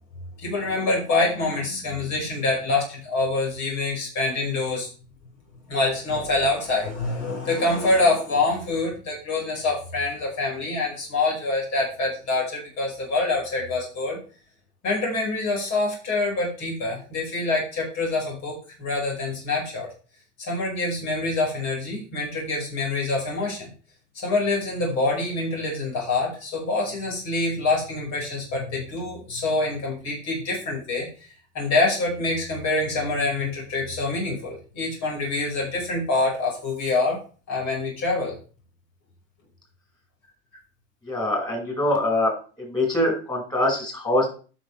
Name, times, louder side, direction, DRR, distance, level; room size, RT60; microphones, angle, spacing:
voice 1, 0.4-4.9 5.7-14.2 14.8-19.9 20.4-23.7 24.1-37.2 37.5-38.3, left 2 dB, 50° left, -2 dB, 5.5 m, -26 dB
voice 2, 41.0-42.3 42.6-44.3, left 1 dB, 10° left, -1 dB, 5.4 m, -23 dB
13.0 x 6.4 x 3.4 m, 0.37 s
hypercardioid pair, 100°, 35 cm